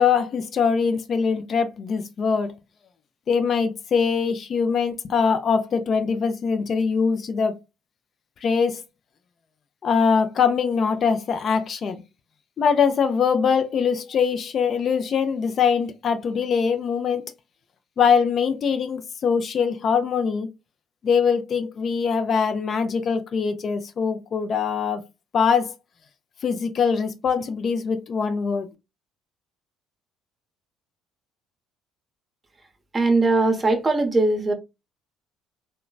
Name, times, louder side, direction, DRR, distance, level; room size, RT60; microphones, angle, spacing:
voice 1, 0.0-2.5 3.3-7.6 8.4-8.8 9.8-12.0 12.6-17.3 18.0-20.5 21.0-25.0 25.3-25.7 26.4-28.7, left 6 dB, 45° left, 0.4 m, -22 dB
voice 2, 32.9-34.5, right 2 dB, 25° right, 0.7 m, -20 dB
3.0 x 2.1 x 2.3 m
hypercardioid pair, 55°, 0 cm